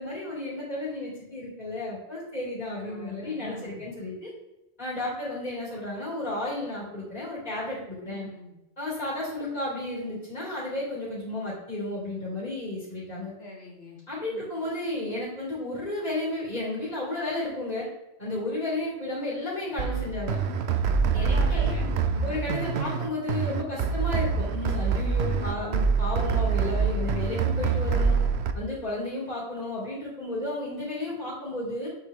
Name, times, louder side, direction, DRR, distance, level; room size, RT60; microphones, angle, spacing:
voice 1, 0.0-4.3 4.8-8.3 8.8-13.3 14.1-17.9 18.2-20.4 21.1-21.7 22.2-28.2 28.5-31.9, left 2 dB, 40° left, -6 dB, 3.1 m, -33 dB
voice 2, 2.7-3.8 8.0-8.5 13.4-14.5 21.1-22.4 25.2-25.7, left 2 dB, 70° left, -1 dB, 2.0 m, -44 dB
sound 1, 19.8-28.5, right 5 dB, 75° right, 1.0 m, -25 dB
8.1 x 6.6 x 3.8 m, 0.95 s
omnidirectional pair, 1.1 m